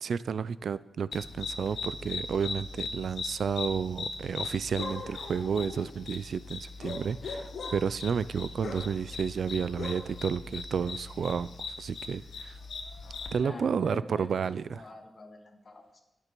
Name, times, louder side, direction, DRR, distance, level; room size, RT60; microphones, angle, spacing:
voice 1, 0.0-12.6 13.3-14.8, right 6 dB, 70° right, 17 dB, 0.3 m, -31 dB
sound 1, 1.1-13.4, left 4 dB, 75° left, 1.2 m, -39 dB
voice 2, 13.4-16.0, left 2 dB, 35° left, 3 dB, 1.7 m, -45 dB
19.5 x 6.8 x 4.5 m, 0.89 s
wide cardioid pair, 165°, 0 cm